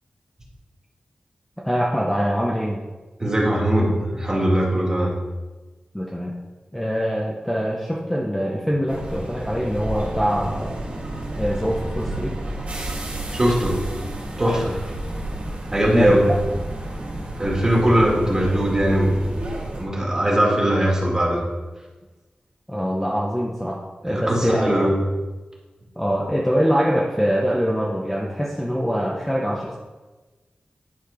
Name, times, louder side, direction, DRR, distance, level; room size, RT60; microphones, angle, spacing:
voice 1, 1.6-2.8 5.9-6.3 6.7-10.9 11.4-12.4 15.9-16.2 22.7-24.8 26.0-29.8, equal, 5° left, -3 dB, 0.8 m, -24 dB
voice 2, 3.2-5.1 13.3-13.8 14.4-14.8 15.7-16.3 17.4-19.2 19.8-21.4 24.0-25.0, right 1 dB, 20° right, -3 dB, 2.1 m, -20 dB
sound 1, 8.9-19.8, right 1 dB, 60° right, 2.4 m, -31 dB
10.5 x 4.3 x 5.0 m, 1.2 s
wide cardioid pair, 125°, 3 cm